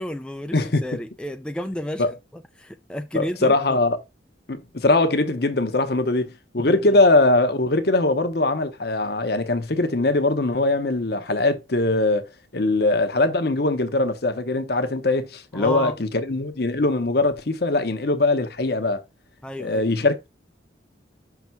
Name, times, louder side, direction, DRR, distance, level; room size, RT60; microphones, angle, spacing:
voice 1, 0.0-2.0 2.3-3.8 6.6-7.0 15.5-16.0 19.4-19.8, left 1 dB, 5° left, 0.3 m, -32 dB
voice 2, 3.1-4.0 4.5-12.2 12.5-19.0 19.6-20.3, left 2 dB, 55° left, 0.9 m, -21 dB
5.9 x 3.3 x 5.7 m
head